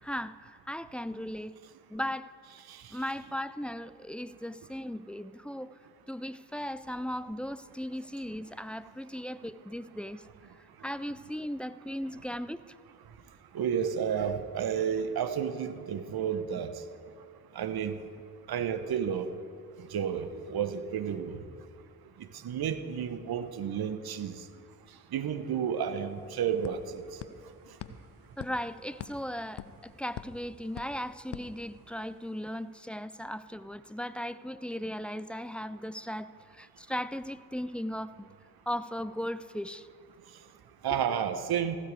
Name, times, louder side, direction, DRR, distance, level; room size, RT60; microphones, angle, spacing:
voice 1, 0.0-1.6 1.9-2.3 2.9-5.8 6.1-10.3 10.5-12.8 28.4-38.3 38.7-39.9, equal, 5° left, 15 dB, 0.3 m, -37 dB
voice 2, 13.5-16.7 17.6-17.9 18.5-19.3 19.9-21.4 22.4-24.3 25.1-26.8 40.8-41.8, right 8 dB, 50° right, 10 dB, 1.0 m, -31 dB
sound 1, 25.5-25.6 25.8-32.3, left 9 dB, 60° left, 0.9 m, -47 dB
15.0 x 11.5 x 4.8 m, 2.2 s
hypercardioid pair, 40°, 47 cm